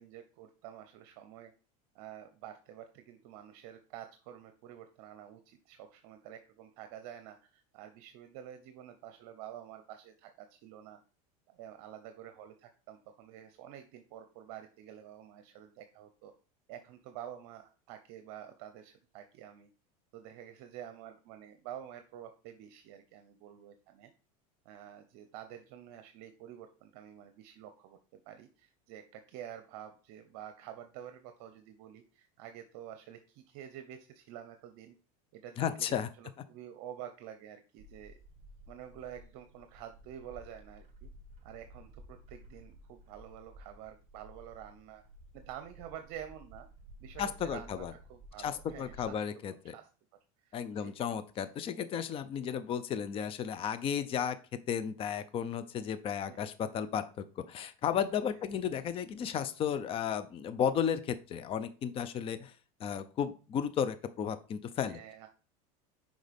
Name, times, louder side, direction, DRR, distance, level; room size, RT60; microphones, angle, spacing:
voice 1, 0.0-1.5 1.9-11.0 11.5-16.3 16.7-19.7 20.1-24.1 24.6-34.9 35.3-38.2 38.7-41.1 41.4-45.0 45.3-46.7 47.0-49.2 49.7-49.9 50.4-50.9 56.1-56.5 64.9-65.3, right 10 dB, 60° right, 8 dB, 0.8 m, -49 dB
voice 2, 35.6-36.1 47.2-47.9 48.4-49.7 50.5-54.4 54.7-62.5 62.8-65.0, left 8 dB, 30° left, 12 dB, 0.6 m, -34 dB
Bird, 37.8-49.1, equal, 35° right, 1.6 m, -54 dB
6.4 x 5.1 x 3.5 m, 0.36 s
supercardioid pair, 130°, 19 cm